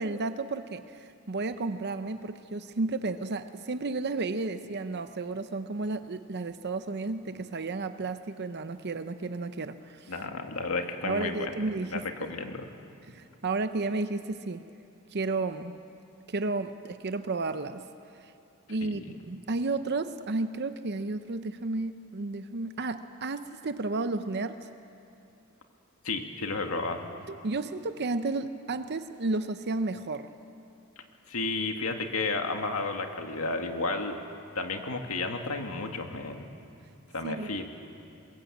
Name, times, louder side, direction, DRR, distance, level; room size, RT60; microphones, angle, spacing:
voice 1, 0.0-10.1 11.0-12.3 13.1-14.7 15.1-15.8 16.3-17.8 18.2-18.3 18.7-24.7 27.4-30.3 37.2-37.6, right 3 dB, 50° right, 10 dB, 0.7 m, -32 dB
voice 2, 10.1-11.5 11.9-12.7 18.8-19.1 26.0-27.0 31.0-34.2 34.5-36.5 37.1-37.6, left 3 dB, 85° left, 4 dB, 2.1 m, -32 dB
22.0 x 22.0 x 8.6 m, 2.6 s
head